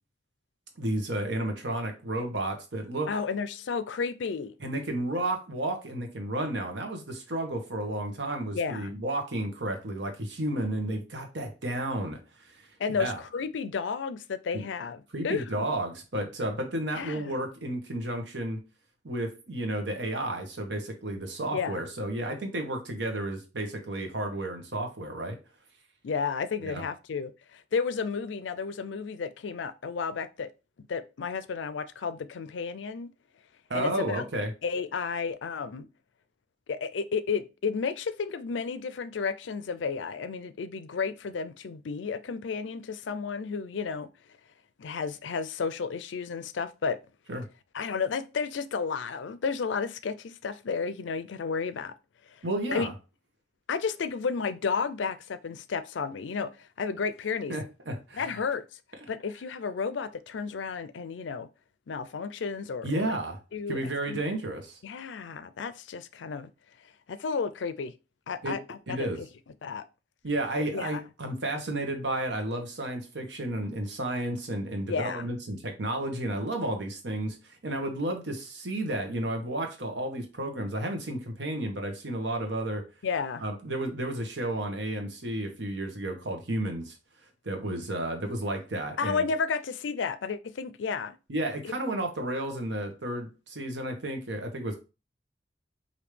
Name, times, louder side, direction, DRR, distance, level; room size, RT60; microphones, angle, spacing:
voice 1, 0.8-3.1 4.6-12.6 13.0-13.2 14.5-14.6 15.1-18.6 19.0-25.4 26.6-26.8 33.7-34.5 47.3-47.5 52.4-52.9 57.5-58.4 62.8-63.4 63.7-64.8 68.4-68.6 68.9-69.2 70.2-82.8 83.4-87.0 87.4-89.3 91.3-94.8, right 1 dB, 75° right, 1.1 m, -32 dB
voice 2, 3.1-4.5 8.5-8.9 12.8-15.7 16.9-17.3 21.5-21.8 26.0-30.5 30.9-33.1 33.7-34.3 34.6-35.9 36.7-44.1 44.8-47.0 47.7-51.9 52.3-52.4 52.7-52.9 53.7-57.6 58.1-58.6 59.1-61.5 61.9-63.1 63.5-63.8 64.1-64.2 64.8-66.5 67.1-67.9 68.3-69.3 69.6-69.8 70.7-71.0 74.9-75.3 83.0-83.5 89.0-91.2 91.6-91.7, left 5 dB, 90° left, 0.4 m, -32 dB
5.0 x 2.7 x 3.2 m
head